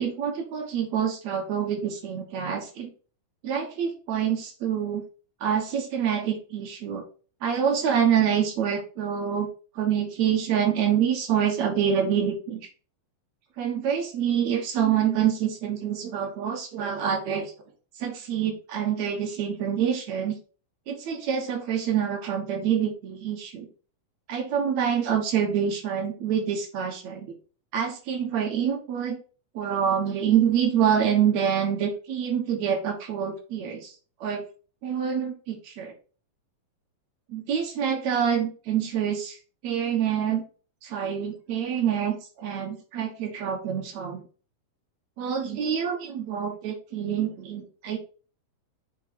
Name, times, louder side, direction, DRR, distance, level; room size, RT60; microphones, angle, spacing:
voice 1, 0.0-2.9 3.4-5.0 5.4-7.0 7.4-9.5 9.8-12.6 13.6-17.5 18.0-20.4 20.9-23.7 24.3-27.3 27.7-29.2 29.6-33.9 34.2-34.4 34.8-35.9 37.3-39.4 39.6-40.4 40.8-44.2 45.2-48.0, right 8 dB, 60° right, 3 dB, 2.2 m, -26 dB
8.1 x 4.1 x 4.1 m, 0.37 s
omnidirectional pair, 4.2 m